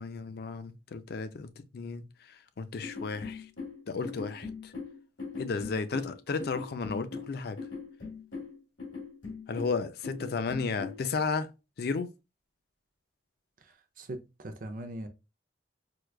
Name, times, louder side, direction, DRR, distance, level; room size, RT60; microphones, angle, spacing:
voice 1, 0.0-3.5 3.9-4.7 5.4-7.6 9.5-11.5 11.8-12.1, left 4 dB, 55° left, 0.4 m, -33 dB
sound 1, 2.8-11.0, left 4 dB, 75° left, 1.7 m, -40 dB
voice 2, 14.0-15.1, right 1 dB, 45° right, 0.5 m, -40 dB
4.6 x 2.3 x 2.3 m
head